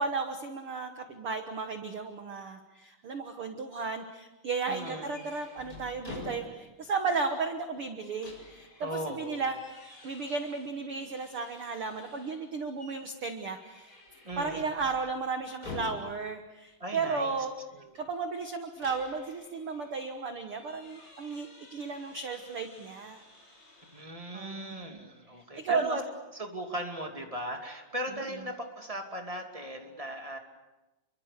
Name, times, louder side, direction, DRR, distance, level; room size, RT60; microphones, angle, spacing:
voice 1, 0.0-9.8 10.0-14.0 14.4-17.5 17.9-23.2 24.3-25.0 25.5-26.0, right 4 dB, 65° right, 6 dB, 1.3 m, -34 dB
sound 1, 4.7-6.9 7.2-7.3 7.8-12.4 12.8-13.1 13.5-16.4 18.4-24.0, left 3 dB, 20° left, 7.4 m, -49 dB
voice 2, 4.7-5.3 8.8-9.6 14.2-14.7 16.8-17.4 17.7-18.0 23.8-26.0 26.3-30.4, right 1 dB, 10° right, 3 dB, 1.9 m, -38 dB
29.0 x 24.0 x 6.7 m, 1.0 s
omnidirectional pair, 4.5 m